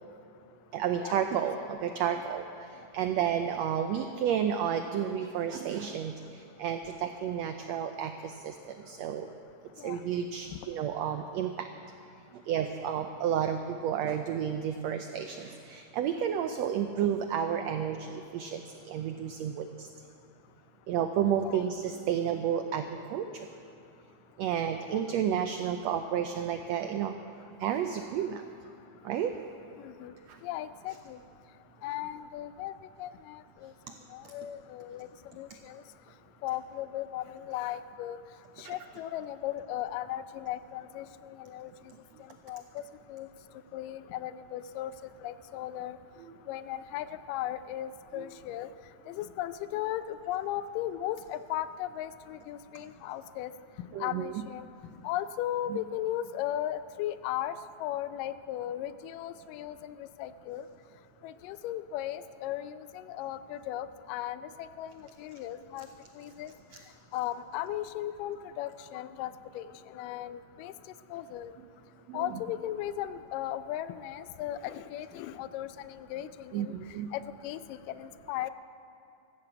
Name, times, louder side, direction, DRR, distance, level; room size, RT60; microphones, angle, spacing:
voice 1, 0.7-9.3 9.8-11.7 12.3-19.9 20.9-23.5 24.4-27.1 27.6-28.4 29.0-29.3 30.3-30.4 34.2-34.3 38.6-38.8 48.2-48.3 53.9-54.3 55.7-55.8 72.1-72.2 76.5-77.1, right 9 dB, 85° right, 7 dB, 1.5 m, -31 dB
voice 2, 29.8-30.1 30.4-31.2 31.8-32.7 33.0-33.7 34.1-35.1 35.3-35.8 36.4-38.2 38.6-41.7 42.5-42.8 43.1-43.3 43.7-44.9 45.2-46.0 46.5-48.7 49.1-53.5 53.8-54.7 55.0-57.6 57.8-60.6 61.2-65.9 66.2-66.5 67.1-70.7 71.1-71.5 72.1-76.8 77.1-78.5, left 12 dB, 90° left, 13 dB, 2.2 m, -36 dB
14.5 x 11.0 x 7.9 m, 2.7 s
omnidirectional pair, 3.8 m